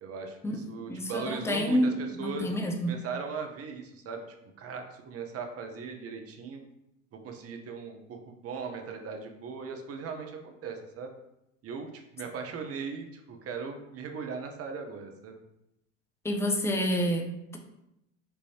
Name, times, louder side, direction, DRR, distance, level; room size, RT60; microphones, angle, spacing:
voice 1, 0.0-2.5 2.9-4.2 4.6-6.6 7.1-11.1 11.6-15.4, right 5 dB, 35° right, 4 dB, 0.8 m, -38 dB
voice 2, 0.9-2.9 16.2-17.6, equal, 5° left, 3 dB, 0.6 m, -28 dB
5.4 x 3.1 x 2.8 m, 0.84 s
hypercardioid pair, 75°, 40 cm